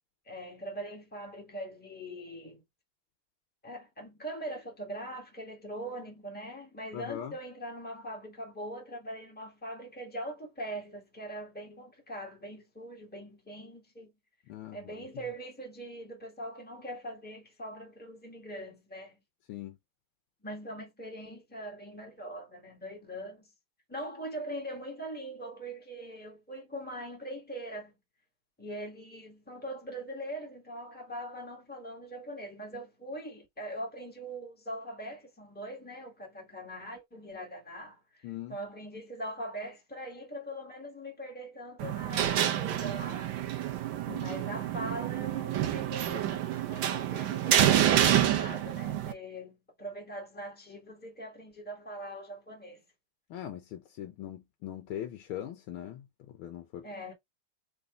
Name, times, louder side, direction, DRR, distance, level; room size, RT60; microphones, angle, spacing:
voice 1, 0.2-2.6 3.6-14.1 14.7-19.2 20.4-23.5 23.9-27.9 28.6-43.3 44.1-52.8 56.8-57.1, right 1 dB, 5° left, 1.6 m, -42 dB
voice 2, 6.9-7.3 14.5-14.8 19.5-19.8 38.2-38.6 44.1-44.4 53.3-56.9, left 11 dB, 90° left, 1.6 m, -41 dB
sound 1, 41.8-49.1, right 11 dB, 70° right, 1.4 m, -28 dB
4.0 x 3.6 x 3.7 m
omnidirectional pair, 2.3 m